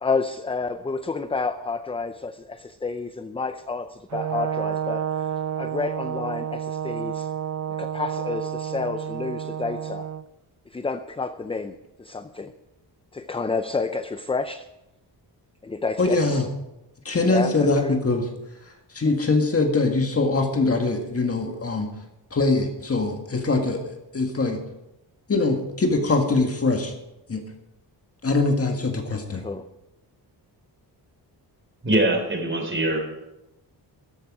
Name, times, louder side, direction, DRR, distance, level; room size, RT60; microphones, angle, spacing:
voice 1, 0.0-5.3 5.6-7.3 7.8-10.1 10.7-12.5 13.1-14.7 15.6-16.4 17.3-18.0 29.4-29.7, left 4 dB, 15° left, 10 dB, 0.5 m, -30 dB
Brass instrument, 4.1-10.2, right 9 dB, 45° right, 0.5 m, -30 dB
voice 2, 16.0-16.5 17.0-18.3 18.9-21.9 22.3-23.9 24.1-24.6 25.3-26.9 27.3-27.4 28.2-29.4, left 3 dB, 35° left, 3 dB, 1.8 m, -22 dB
voice 3, 31.8-33.0, right 1 dB, 30° right, 2 dB, 3.8 m, -22 dB
13.5 x 12.0 x 4.9 m, 0.93 s
wide cardioid pair, 125°, 41 cm